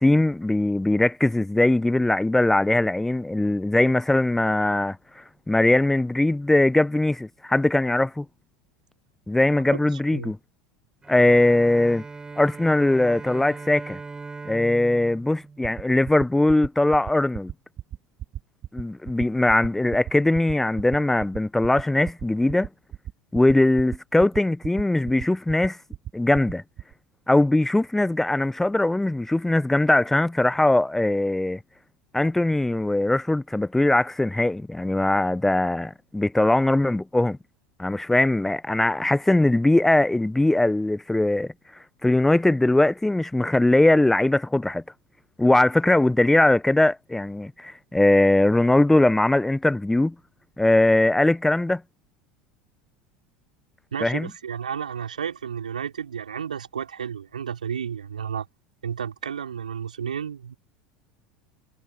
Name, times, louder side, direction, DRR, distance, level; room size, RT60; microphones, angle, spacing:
voice 1, 0.0-8.2 9.3-10.4 11.1-12.0 12.4-14.0 14.5-17.5 18.7-22.7 23.3-25.8 26.1-26.6 27.3-31.6 32.1-37.4 37.8-41.5 42.0-44.8 45.4-50.1 50.6-51.8 54.0-54.3, left 2 dB, 5° left, 0.9 m, -21 dB
Bowed string instrument, 11.0-16.4, right 4 dB, 15° right, 5.1 m, -40 dB
sound 1, 15.6-26.9, right 11 dB, 40° right, 2.9 m, -35 dB
voice 2, 53.9-58.5 58.8-60.5, right 8 dB, 80° right, 5.1 m, -32 dB
figure-of-eight pair, 75°, 4 cm